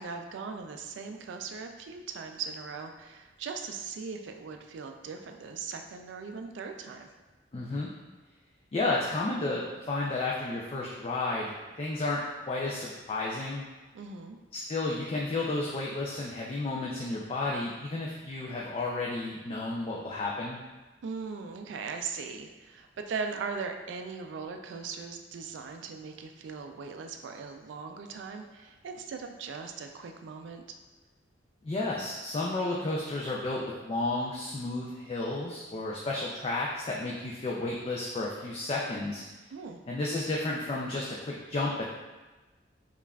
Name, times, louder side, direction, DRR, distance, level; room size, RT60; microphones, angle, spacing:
voice 1, 0.0-7.1 13.9-14.4 21.0-30.8 39.5-39.8, right 5 dB, 80° right, 5 dB, 0.3 m, -39 dB
voice 2, 7.5-7.9 8.7-9.6 9.9-12.2 12.5-13.6 14.5-20.6 31.6-39.2 39.9-41.7, left 2 dB, 30° left, -4 dB, 0.3 m, -32 dB
5.3 x 2.4 x 2.3 m, 1.2 s
head